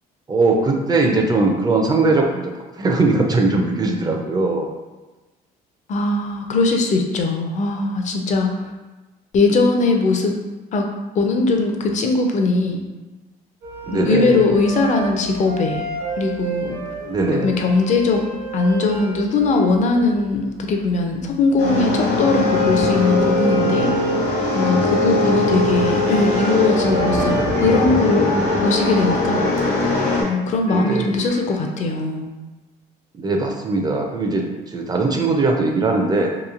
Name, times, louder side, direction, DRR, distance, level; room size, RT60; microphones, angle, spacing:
voice 1, 0.3-2.5 2.8-4.7 13.9-14.5 17.0-17.6 25.3-25.8 30.7-31.1 33.2-36.3, right 3 dB, 25° right, 2 dB, 0.4 m, -20 dB
voice 2, 5.9-8.7 9.3-10.3 10.7-10.9 11.2-12.8 13.9-15.8 16.2-16.8 17.3-18.2 18.5-23.9 24.5-27.3 27.6-28.3 28.6-29.5 30.2-32.3, left 3 dB, 45° left, 3 dB, 0.5 m, -20 dB
sound 1, 13.6-27.4, right 4 dB, 65° right, 0.7 m, -31 dB
sound 2, 21.6-30.2, left 2 dB, 65° left, 1.0 m, -20 dB
sound 3, 25.8-26.5 26.9-27.3 27.6-29.1 29.4-30.4 30.7-31.7, left 1 dB, 85° left, 1.2 m, -33 dB
2.9 x 2.5 x 2.4 m, 1.2 s
cardioid pair, 110°, 17 cm